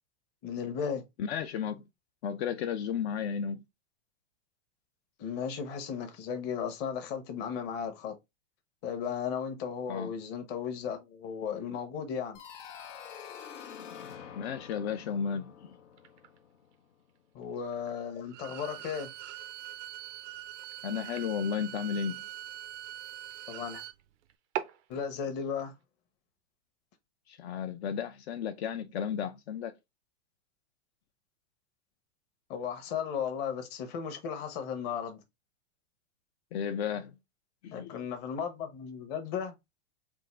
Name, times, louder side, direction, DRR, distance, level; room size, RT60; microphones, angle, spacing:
voice 1, 0.4-1.0 5.2-8.1 8.8-12.4 17.3-19.1 23.5-23.8 24.9-25.7 32.5-35.2 37.7-39.5, left 7 dB, 30° left, 0.9 m, -35 dB
voice 2, 1.2-1.8 2.2-3.6 9.9-10.1 14.4-15.8 20.8-22.2 27.3-29.7 36.5-37.1 37.6-38.0, left 7 dB, 60° left, 0.7 m, -33 dB
sound 1, 12.3-17.0, left 8 dB, 85° left, 1.0 m, -47 dB
sound 2, 13.9-25.8, right 12 dB, 30° right, 0.4 m, -48 dB
Bowed string instrument, 18.3-24.0, right 13 dB, 85° right, 0.6 m, -44 dB
3.7 x 2.6 x 4.3 m
supercardioid pair, 155°, 36 cm